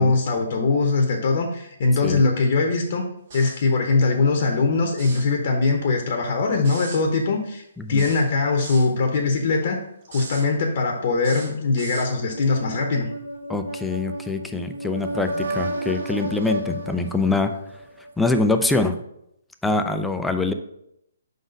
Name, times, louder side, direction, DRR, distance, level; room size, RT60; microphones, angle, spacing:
voice 1, 0.0-3.1 3.3-9.8 10.1-13.1, left 3 dB, 50° left, 3 dB, 0.8 m, -21 dB
sound 1, 3.3-3.7 4.9-5.3 6.6-7.0 8.0-8.9 10.0-10.5 11.2-12.1, right 4 dB, 50° right, 1.8 m, -39 dB
voice 2, 7.8-8.1 13.5-17.5 18.2-19.0 19.6-20.5, left 3 dB, 5° left, 7 dB, 0.4 m, -24 dB
sound 2, 12.3-18.1, right 1 dB, 80° right, 1.0 m, -32 dB
5.1 x 4.0 x 5.1 m, 0.77 s
hypercardioid pair, 155°, 0 cm